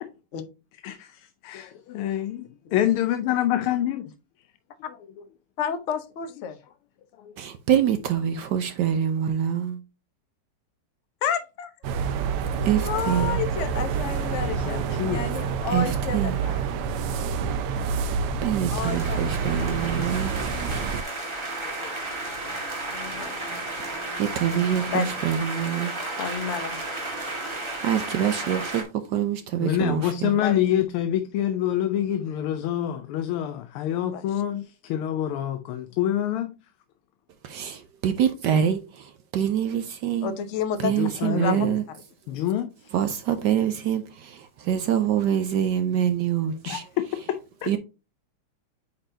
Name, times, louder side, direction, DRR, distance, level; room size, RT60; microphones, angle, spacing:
voice 1, 0.8-4.1 4.9-5.0 7.2-7.4 14.4-15.2 19.2-19.3 21.6-21.9 29.6-36.5 40.8-41.7 42.3-42.9 46.7-46.8 47.6-47.7, left 11 dB, 85° left, 1.6 m, -27 dB
voice 2, 5.6-6.6 11.2-11.7 12.6-16.6 18.7-19.7 22.9-23.4 24.9-25.2 26.2-26.8 30.4-30.6 34.1-34.2 40.2-41.7, left 7 dB, 60° left, 0.7 m, -31 dB
voice 3, 7.4-9.8 12.6-13.4 15.7-16.4 18.4-20.3 23.8-25.9 27.8-30.3 37.4-40.3 40.8-41.8 42.9-46.8 47.7-47.8, right 9 dB, 70° right, 1.1 m, -25 dB
sound 1, 11.8-21.0, right 6 dB, 85° right, 1.6 m, -28 dB
sound 2, 18.8-28.8, right 2 dB, 15° right, 1.2 m, -33 dB
8.8 x 4.2 x 2.6 m
omnidirectional pair, 2.4 m